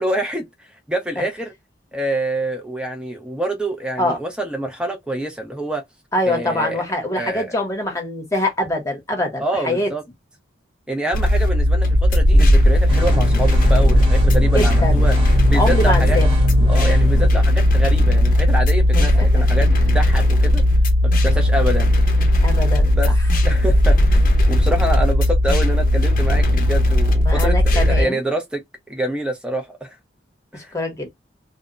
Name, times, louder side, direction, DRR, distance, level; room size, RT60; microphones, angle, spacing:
voice 1, 0.0-1.5 1.9-5.8 6.3-6.8 7.2-7.6 9.4-10.0 10.9-15.1 15.5-16.2 16.7-20.6 21.0-22.3 22.9-23.1 23.4-24.2 24.5-28.6 28.9-30.0 30.5-30.7, right 1 dB, 5° right, 0.4 m, -26 dB
voice 2, 6.1-9.9 14.5-14.9 15.5-16.4 18.9-19.4 22.4-23.1 27.3-28.2 30.5-31.1, left 1 dB, 15° left, 0.8 m, -24 dB
sound 1, 11.1-28.0, left 1 dB, 45° left, 0.6 m, -16 dB
sound 2, 12.9-17.3, equal, 30° right, 0.9 m, -24 dB
2.1 x 2.0 x 3.6 m
head